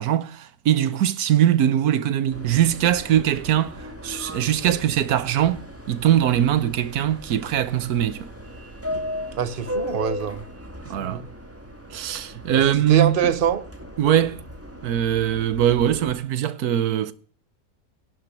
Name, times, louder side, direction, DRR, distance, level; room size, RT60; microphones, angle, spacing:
voice 1, 0.0-8.3 10.9-11.2 11.9-13.2 14.0-14.4 14.8-17.1, right 10 dB, 90° right, 1.4 m, -21 dB
Subway metro underground, 2.3-16.1, left 1 dB, 10° right, 2.1 m, -37 dB
voice 2, 9.4-10.4 11.0-11.3 12.5-13.6, right 8 dB, 40° right, 1.2 m, -24 dB
11.5 x 7.5 x 9.9 m
omnidirectional pair, 1.6 m